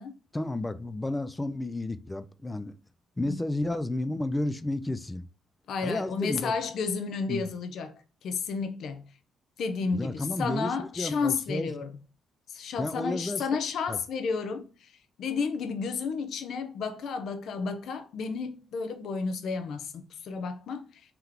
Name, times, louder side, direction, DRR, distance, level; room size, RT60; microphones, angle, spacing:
voice 1, 0.3-2.7 3.2-5.2 5.8-6.5 7.3-7.5 9.9-11.8 12.8-13.5 13.9-14.0, left 2 dB, 15° left, 0.4 m, -32 dB
voice 2, 5.7-7.9 8.2-9.0 9.6-11.9 12.5-14.7 15.2-20.9, left 5 dB, 70° left, 0.7 m, -32 dB
3.8 x 2.9 x 3.4 m
cardioid pair, 90°, 0 cm